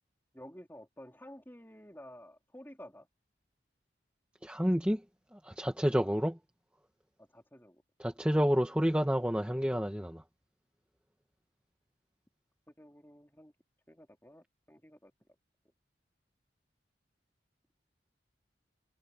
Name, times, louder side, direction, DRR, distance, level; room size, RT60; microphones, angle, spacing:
voice 1, 0.3-3.1 6.0-6.2 7.2-7.8 12.8-13.5 13.9-15.1, equal, 10° left, 4.4 m, -52 dB
voice 2, 4.4-5.0 5.3-6.4 8.0-10.2, equal, 5° right, 1.5 m, -29 dB
head